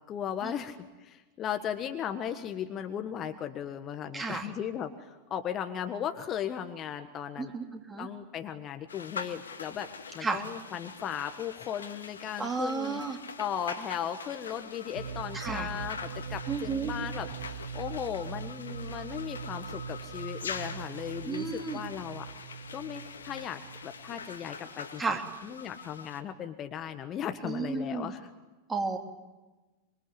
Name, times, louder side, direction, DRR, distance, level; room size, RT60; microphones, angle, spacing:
voice 1, 0.1-7.5 8.0-9.9 10.1-13.0 13.4-22.3 22.7-28.3, left 9 dB, 30° left, 7 dB, 1.5 m, -37 dB
voice 2, 4.1-4.5 7.4-8.1 10.2-10.4 12.4-13.2 15.3-15.7 16.5-16.9 21.3-21.8 25.0-25.2 27.4-28.1 28.7-29.0, right 4 dB, 15° right, 3 dB, 3.5 m, -32 dB
sound 1, 8.9-26.2, left 5 dB, 70° left, 2.1 m, -44 dB
sound 2, 15.0-24.6, right 7 dB, 55° right, 1.3 m, -41 dB
26.0 x 23.5 x 9.5 m, 1.2 s
figure-of-eight pair, 90°, 0 cm